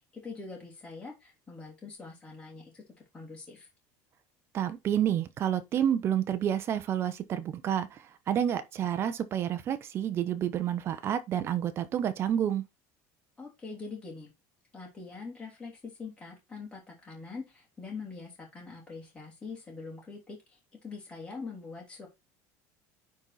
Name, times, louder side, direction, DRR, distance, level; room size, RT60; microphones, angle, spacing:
voice 1, 0.0-2.8 3.1-3.7 13.4-14.3 14.7-22.1, left 4 dB, 10° left, 3.0 m, -43 dB
voice 2, 4.5-12.6, right 10 dB, 30° right, 0.9 m, -29 dB
9.7 x 4.3 x 4.1 m
cardioid pair, 165°, 8 cm